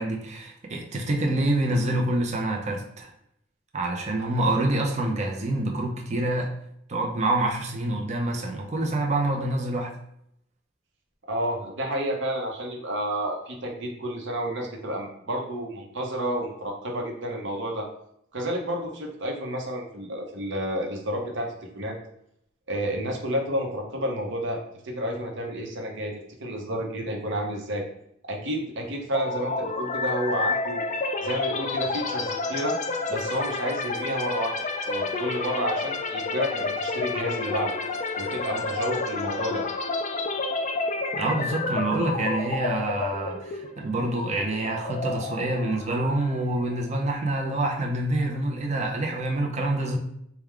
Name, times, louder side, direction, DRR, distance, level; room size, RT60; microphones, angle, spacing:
voice 1, 0.0-3.1 3.7-6.5 6.9-9.9 41.1-50.0, right 2 dB, 35° right, 1 dB, 0.5 m, -26 dB
voice 2, 11.3-17.9 18.3-22.0 22.7-26.1 26.4-27.9 28.2-30.8 31.2-32.8 33.1-34.6 34.8-37.8 38.2-39.6, equal, 65° right, 1 dB, 0.9 m, -30 dB
sound 1, 29.1-46.9, left 3 dB, 35° left, 0.3 m, -30 dB
4.5 x 2.3 x 3.6 m, 0.73 s
head